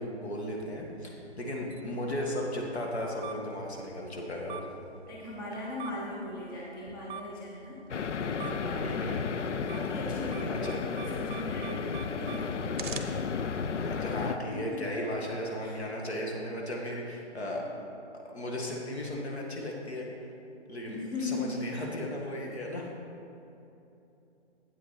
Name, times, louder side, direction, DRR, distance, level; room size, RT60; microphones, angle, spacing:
voice 1, 0.0-4.7 8.8-9.2 10.5-10.8 13.8-17.7 18.1-20.1 20.7-22.9, left 1 dB, 65° left, -1 dB, 1.8 m, -36 dB
sound 1, 0.6-14.5, right 5 dB, 45° right, 0.7 m, -47 dB
voice 2, 5.1-7.8 8.4-9.1 9.7-12.5 14.5-15.2 15.6-15.8 20.9-21.6, left 2 dB, 20° left, -4 dB, 0.7 m, -38 dB
sound 2, 7.9-14.4, left 5 dB, 85° left, 0.6 m, -33 dB
8.3 x 8.1 x 4.3 m, 2.9 s
figure-of-eight pair, 150°, 35 cm